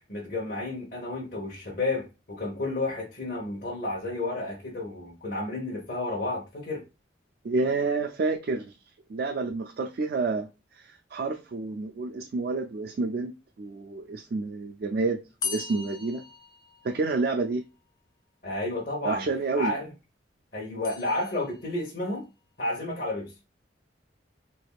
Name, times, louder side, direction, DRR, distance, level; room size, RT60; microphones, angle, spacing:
voice 1, 0.1-6.8 18.4-19.2 19.6-19.9 20.5-22.3 22.6-23.3, left 2 dB, 50° left, 1.0 m, -31 dB
voice 2, 7.4-8.6 9.1-10.5 10.7-13.3 13.6-15.2 15.4-16.2 16.8-17.6 19.0-19.7, right 3 dB, 55° right, 0.4 m, -29 dB
sound 1, 15.4-17.4 20.8-21.9, left 5 dB, 20° left, 0.5 m, -38 dB
3.6 x 3.4 x 2.4 m
head